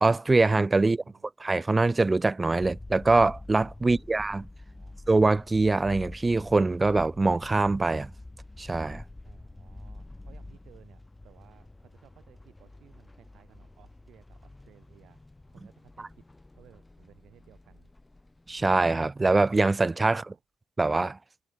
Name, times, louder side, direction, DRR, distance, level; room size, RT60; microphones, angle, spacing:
voice 1, 0.0-1.0 1.4-4.5 5.1-8.1 8.6-9.0 18.5-20.2 20.8-21.2, right 3 dB, 20° right, 0.4 m, -23 dB
voice 2, 0.8-1.3 3.8-4.2 4.7-5.0 9.2-15.2 15.5-16.2 16.6-17.9 20.1-20.4, right 12 dB, 75° right, 3.2 m, -59 dB
sound 1, 2.6-18.8, left 2 dB, 15° left, 0.8 m, -47 dB
cardioid pair, 90°, 0 cm